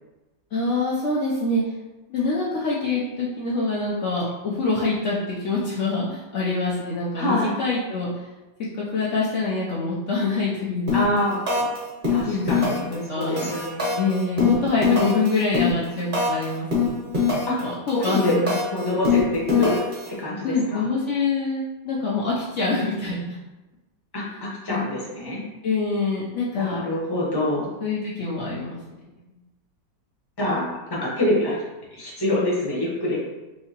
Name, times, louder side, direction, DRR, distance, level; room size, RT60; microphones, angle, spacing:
voice 1, 0.5-1.6 2.1-8.1 8.8-10.9 12.3-13.5 13.9-17.1 17.4-18.6 20.4-23.4 24.7-24.8 25.6-26.8 27.8-28.8, left 3 dB, 70° left, -6 dB, 0.7 m, -25 dB
voice 2, 7.2-7.6 10.9-11.4 12.1-13.8 17.5-17.6 17.9-18.4 18.7-19.8 20.2-20.9 24.1-25.4 26.5-27.7 30.4-31.6 31.9-33.2, left 1 dB, 20° left, -5 dB, 0.6 m, -25 dB
sound 1, 10.9-11.2 11.5-11.8 12.0-12.9 13.2-16.4 16.7-17.6 17.9-20.1, left 5 dB, 35° right, 1.1 m, -22 dB
4.4 x 2.8 x 2.8 m, 1.1 s
omnidirectional pair, 1.9 m